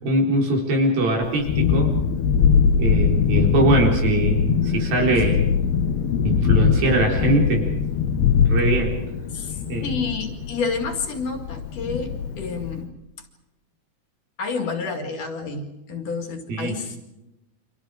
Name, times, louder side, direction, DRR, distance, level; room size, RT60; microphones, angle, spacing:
voice 1, 0.0-1.9 2.7-5.4 6.2-7.7 8.5-9.0 9.7-9.9 16.5-16.7, right 2 dB, 70° right, 0 dB, 5.8 m, -22 dB
Thunderstorm, 1.2-12.8, left 6 dB, 85° left, 3.3 m, -22 dB
voice 2, 9.3-12.9 14.4-17.0, left 4 dB, 55° left, 5 dB, 3.6 m, -29 dB
30.0 x 26.0 x 5.0 m, 0.94 s
omnidirectional pair, 4.5 m